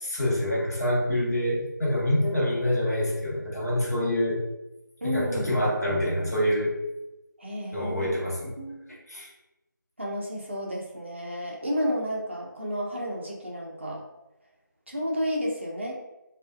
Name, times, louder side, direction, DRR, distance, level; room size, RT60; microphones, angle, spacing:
voice 1, 0.0-4.4 5.0-6.8 7.7-8.5 8.9-9.3, left 1 dB, 50° left, -4 dB, 1.1 m, -26 dB
voice 2, 5.0-5.5 7.4-8.2 8.6-8.8 10.0-14.0 14.9-15.9, equal, 35° right, -2 dB, 0.5 m, -31 dB
3.5 x 2.4 x 2.5 m, 0.95 s
figure-of-eight pair, 170°, 11 cm